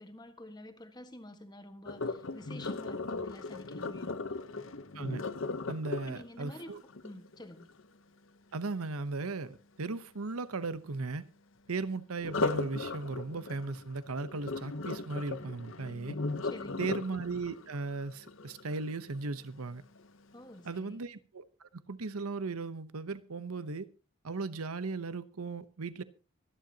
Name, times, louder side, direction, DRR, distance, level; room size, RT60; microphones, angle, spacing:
voice 1, 0.0-4.2 6.1-7.7 16.4-16.9 20.3-21.0, left 1 dB, 20° left, 1.5 m, -49 dB
Sink (filling or washing), 1.9-7.8 12.2-19.2 19.7-20.1 20.6-20.7, left 3 dB, 65° left, 1.0 m, -37 dB
voice 2, 5.7-6.8 8.5-11.3 11.7-16.2 16.8-19.8 20.6-23.9 24.2-26.0, right 3 dB, 90° right, 0.9 m, -37 dB
25.0 x 10.5 x 2.9 m
head